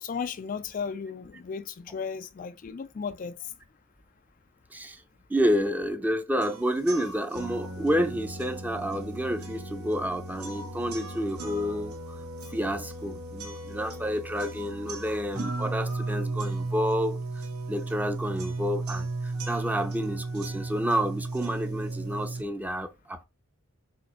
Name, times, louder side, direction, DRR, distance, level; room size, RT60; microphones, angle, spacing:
voice 1, 0.0-3.5, left 6 dB, 35° left, 0.3 m, -35 dB
voice 2, 5.3-12.2 12.5-23.2, equal, 5° right, 0.6 m, -29 dB
sound 1, 6.4-22.4, right 2 dB, 85° right, 1.7 m, -35 dB
5.1 x 4.3 x 4.4 m
head